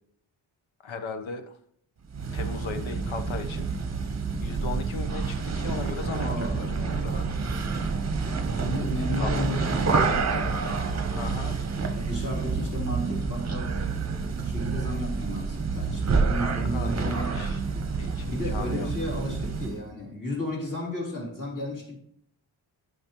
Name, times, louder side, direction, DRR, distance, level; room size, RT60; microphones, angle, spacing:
voice 1, 0.8-1.6 2.3-3.7 4.4-7.3 9.2-9.3 11.1-11.6 16.4-17.6 18.0-18.9, left 5 dB, 75° left, 1.0 m, -37 dB
sound 1, 2.1-19.8, right 4 dB, 35° right, 0.8 m, -28 dB
voice 2, 6.2-6.7 8.5-10.6 11.9-13.8 14.4-17.5 18.3-22.0, left 1 dB, 40° left, 3.5 m, -33 dB
12.5 x 5.2 x 3.0 m
wide cardioid pair, 110°, 47 cm